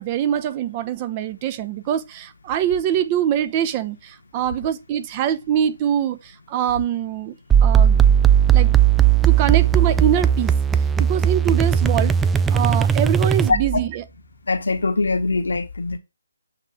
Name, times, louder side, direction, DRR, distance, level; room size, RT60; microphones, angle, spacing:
voice 1, 0.0-7.3 7.6-8.1 8.5-8.8 9.3-10.5 11.0-12.2 12.5-14.1, right 10 dB, 25° right, 0.7 m, -24 dB
sound 1, 7.5-13.9, right 9 dB, 10° right, 0.3 m, -17 dB
voice 2, 14.5-16.0, left 3 dB, 70° left, 1.1 m, -22 dB
8.1 x 3.3 x 4.9 m
figure-of-eight pair, 145°, 0 cm